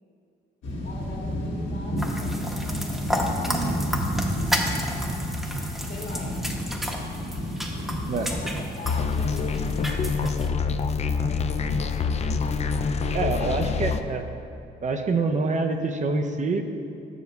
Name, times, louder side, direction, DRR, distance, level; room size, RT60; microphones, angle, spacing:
sound 1, 0.6-8.6, equal, 85° left, 1.5 m, -30 dB
voice 1, 0.8-3.8 5.9-6.4 8.1-10.0 13.2-14.2, left 2 dB, 60° left, -1 dB, 1.6 m, -42 dB
sound 2, 2.0-10.5, equal, ahead, 0.8 m, -33 dB
sound 3, 8.8-14.0, left 5 dB, 35° left, 0.4 m, -26 dB
voice 2, 13.1-14.2 14.8-16.6, right 3 dB, 40° right, 5 dB, 0.5 m, -26 dB
6.6 x 5.0 x 6.6 m, 2.5 s
cardioid pair, 90°, 20 cm